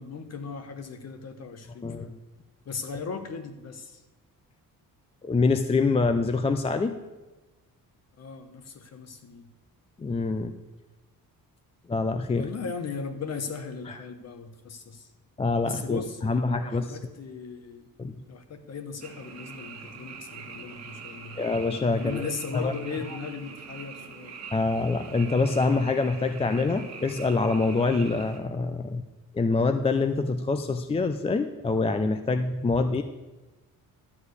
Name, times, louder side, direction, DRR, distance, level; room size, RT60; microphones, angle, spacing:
voice 1, 0.0-2.2 2.6-4.0 8.2-9.5 12.4-15.1 15.6-17.9 18.3-21.4 21.9-24.4, left 5 dB, 45° left, 8 dB, 1.2 m, -37 dB
voice 2, 5.2-6.9 10.0-10.5 11.9-12.5 15.4-17.0 18.0-18.1 21.4-22.3 22.5-22.7 24.5-29.0 29.3-33.0, left 3 dB, 15° left, 8 dB, 0.4 m, -25 dB
Frog, 19.0-28.4, right 5 dB, 45° right, 1.6 m, -43 dB
12.0 x 4.9 x 8.2 m, 1.1 s
cardioid pair, 140°, 36 cm